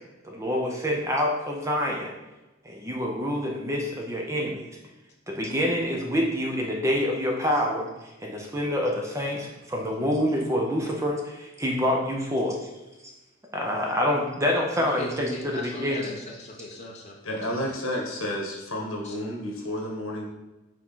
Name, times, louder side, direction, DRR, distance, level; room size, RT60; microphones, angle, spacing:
voice 1, 0.2-2.1 2.6-4.7 5.3-12.6 13.0-13.1 13.5-16.2, left 1 dB, 15° right, 0 dB, 0.7 m, -27 dB
voice 2, 14.8-17.2 17.5-17.8 19.0-19.2, left 1 dB, 30° left, -2 dB, 0.9 m, -39 dB
voice 3, 17.2-20.3, left 1 dB, 75° left, -1 dB, 1.5 m, -31 dB
4.8 x 3.8 x 5.5 m, 1.1 s
head